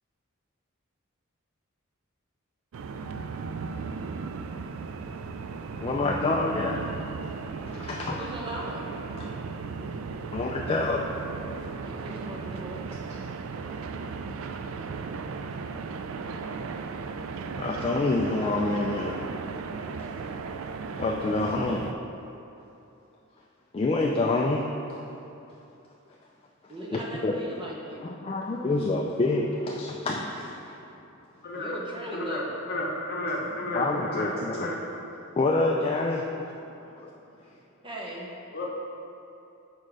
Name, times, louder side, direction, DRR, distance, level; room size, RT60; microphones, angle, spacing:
sound 1, 2.7-21.9, right 4 dB, 70° right, 0.3 m, -36 dB
voice 1, 5.8-6.8 7.7-8.2 10.3-11.1 17.6-19.2 21.0-21.9 23.7-25.0 26.9-27.4 28.0-30.8 33.7-34.7 35.4-36.2 37.0-37.1, left 2 dB, 25° left, -1 dB, 0.4 m, -27 dB
voice 2, 8.0-8.9 11.8-12.8 26.7-28.1 31.5-32.6 37.8-38.3, right 1 dB, 25° right, -3 dB, 0.9 m, -38 dB
voice 3, 31.4-31.7 32.1-32.4 32.7-34.8 38.5-38.7, left 1 dB, 50° left, -2 dB, 1.0 m, -32 dB
6.4 x 5.1 x 4.9 m, 2.8 s
head